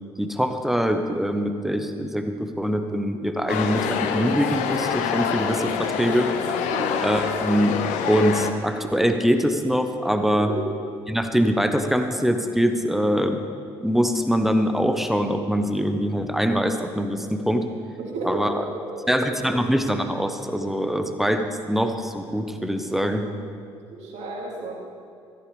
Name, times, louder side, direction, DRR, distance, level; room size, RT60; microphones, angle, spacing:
voice 1, 0.2-6.3 7.0-7.8 8.1-10.5 11.1-13.4 13.8-17.6 18.2-18.5 19.1-23.3, equal, ahead, 6 dB, 1.2 m, -23 dB
sound 1, 3.5-8.5, left 7 dB, 65° left, 0.9 m, -26 dB
voice 2, 18.0-18.4 23.9-24.7, right 3 dB, 60° right, -3 dB, 3.1 m, -32 dB
14.5 x 14.0 x 3.5 m, 2.4 s
figure-of-eight pair, 50°, 13 cm